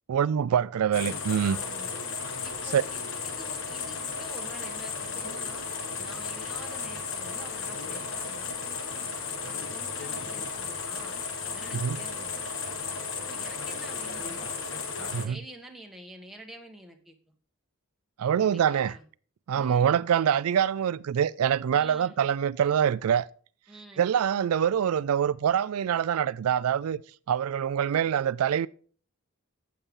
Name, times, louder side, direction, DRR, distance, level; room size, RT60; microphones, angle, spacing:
voice 1, 0.1-1.6 2.7-2.8 11.7-12.0 15.1-15.4 18.2-19.0 19.5-23.3 24.0-27.0 27.3-28.7, right 8 dB, 90° right, 0.4 m, -25 dB
sound 1, 0.9-15.2, left 5 dB, 65° left, 1.4 m, -34 dB
voice 2, 1.4-2.0 2.4-5.7 6.0-9.1 9.5-11.1 11.5-14.5 15.0-17.1 18.4-19.0 19.5-20.1 21.7-22.2 23.7-24.1, right 1 dB, ahead, 1.4 m, -48 dB
12.0 x 8.6 x 3.7 m
head